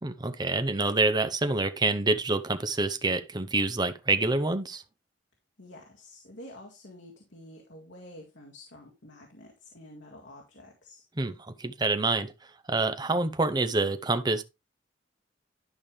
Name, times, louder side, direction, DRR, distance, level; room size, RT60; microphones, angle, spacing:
voice 1, 0.0-4.8 11.2-12.3 12.7-14.4, right 3 dB, 20° right, 0.7 m, -27 dB
voice 2, 5.6-11.0, left 1 dB, 75° left, 1.9 m, -49 dB
11.0 x 5.2 x 3.2 m
head